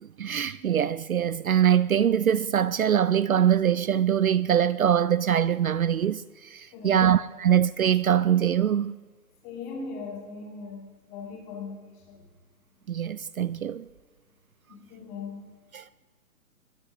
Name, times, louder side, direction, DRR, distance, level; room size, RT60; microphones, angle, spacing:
voice 1, 0.0-8.9 12.9-13.8 15.7-15.9, right 9 dB, 60° right, 0.5 m, -23 dB
voice 2, 6.7-7.0 9.4-12.2 14.7-15.5, left 4 dB, 30° left, 6.8 m, -39 dB
21.5 x 21.0 x 2.9 m
figure-of-eight pair, 145°, 48 cm